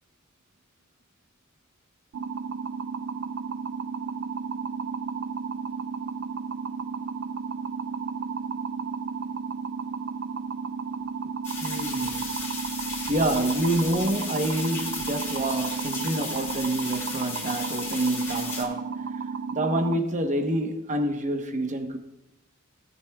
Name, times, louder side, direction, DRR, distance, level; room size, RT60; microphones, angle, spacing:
sound 1, 2.1-20.0, right 5 dB, 60° right, 0.3 m, -33 dB
sound 2, 11.4-18.6, left 3 dB, 15° left, 3.8 m, -35 dB
voice 1, 11.6-12.4 13.1-18.9 19.5-22.0, right 1 dB, 35° right, 1.0 m, -27 dB
17.5 x 9.3 x 2.3 m
head